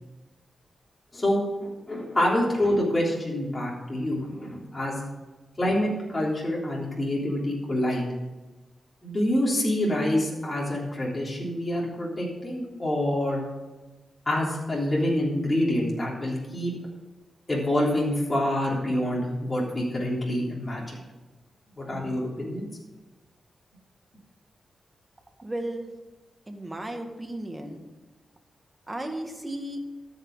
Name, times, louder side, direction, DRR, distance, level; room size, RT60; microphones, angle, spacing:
voice 1, 1.1-5.0 5.6-8.1 9.0-13.4 14.3-16.7 17.5-21.0 21.8-22.7, left 1 dB, 30° left, -4 dB, 3.5 m, -26 dB
voice 2, 25.4-25.9 26.5-27.8 28.9-29.8, right 1 dB, 20° right, 4 dB, 1.9 m, -34 dB
13.5 x 6.0 x 6.6 m, 1.2 s
cardioid pair, 55°, 0 cm